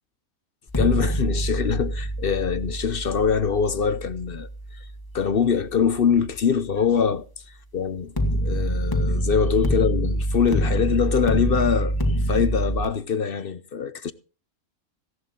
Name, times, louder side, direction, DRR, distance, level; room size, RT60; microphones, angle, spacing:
sound 1, 0.7-5.8 8.2-12.9, right 1 dB, 15° left, 1.7 m, -26 dB
voice 1, 0.8-4.9 5.1-8.1 8.4-14.1, left 6 dB, 50° left, 0.8 m, -24 dB
16.0 x 11.0 x 3.7 m
omnidirectional pair, 1.5 m